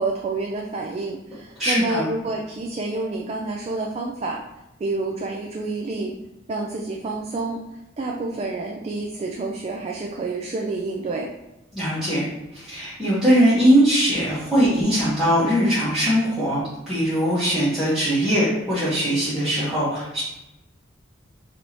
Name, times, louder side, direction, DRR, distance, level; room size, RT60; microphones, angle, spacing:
voice 1, 0.0-4.4 4.8-6.2 6.5-7.6 8.0-11.3, right 3 dB, 30° right, 0 dB, 0.3 m, -28 dB
voice 2, 1.6-2.1 11.7-12.2 12.5-20.2, equal, ahead, -13 dB, 1.1 m, -21 dB
4.5 x 2.8 x 2.8 m, 0.95 s
head